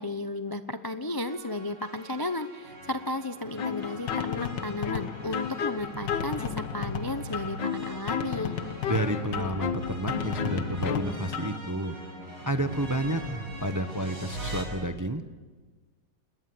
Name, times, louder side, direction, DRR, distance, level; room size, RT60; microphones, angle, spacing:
voice 1, 0.0-8.5, left 2 dB, 35° left, 9 dB, 0.3 m, -34 dB
sound 1, 1.2-14.6, right 1 dB, 75° right, 6.5 m, -41 dB
sound 2, 3.6-11.6, left 7 dB, 75° left, 1.9 m, -32 dB
voice 2, 8.9-11.9 12.4-15.2, right 1 dB, 20° right, 9 dB, 0.5 m, -30 dB
28.0 x 21.0 x 7.8 m, 1.4 s
omnidirectional pair, 1.9 m